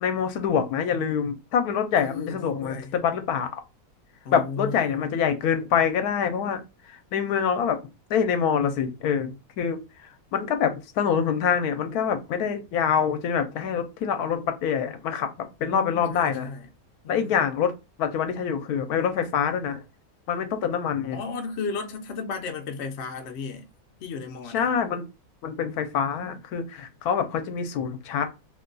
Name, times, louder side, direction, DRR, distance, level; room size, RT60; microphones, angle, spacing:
voice 1, 0.0-3.5 4.3-6.6 6.9-7.8 8.1-9.8 10.3-16.5 17.1-17.7 18.0-19.8 20.3-21.2 24.5-25.0 25.4-28.3, left 7 dB, 80° left, 1.1 m, -25 dB
voice 2, 1.9-2.9 4.2-5.1 15.6-16.7 17.0-17.5 21.1-23.7 24.0-24.7, left 4 dB, 60° left, 0.8 m, -35 dB
2.9 x 2.2 x 3.7 m
omnidirectional pair, 1.6 m